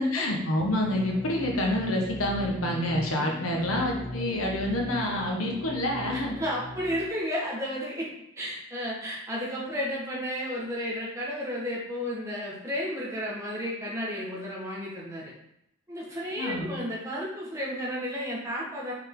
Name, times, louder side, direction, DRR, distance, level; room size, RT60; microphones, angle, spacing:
voice 1, 0.0-6.4 16.4-16.7, left 1 dB, 85° left, 0 dB, 1.3 m, -27 dB
sound 1, 0.8-7.1, equal, 15° left, 0.5 m, -38 dB
voice 2, 6.1-8.1 8.4-15.3 15.9-18.9, equal, 15° right, -5 dB, 1.5 m, -32 dB
5.5 x 5.0 x 3.8 m, 0.79 s
head